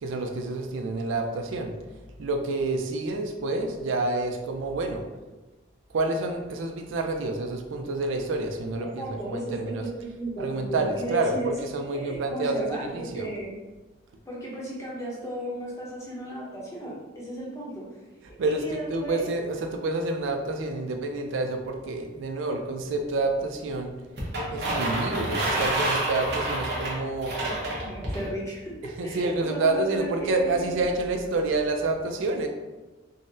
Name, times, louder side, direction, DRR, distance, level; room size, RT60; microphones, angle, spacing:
voice 1, 0.0-1.7 2.2-5.0 5.9-9.8 10.4-13.3 18.4-23.9 24.5-27.3 29.0-32.5, right 2 dB, 75° right, 4 dB, 0.4 m, -28 dB
voice 2, 9.0-11.5 11.9-13.6 14.3-17.8 18.5-19.3 27.4-30.7, right 1 dB, 15° left, -5 dB, 0.7 m, -35 dB
sound 1, 24.2-28.3, right 1 dB, 55° right, 0.8 m, -28 dB
3.7 x 2.0 x 2.6 m, 1.2 s
head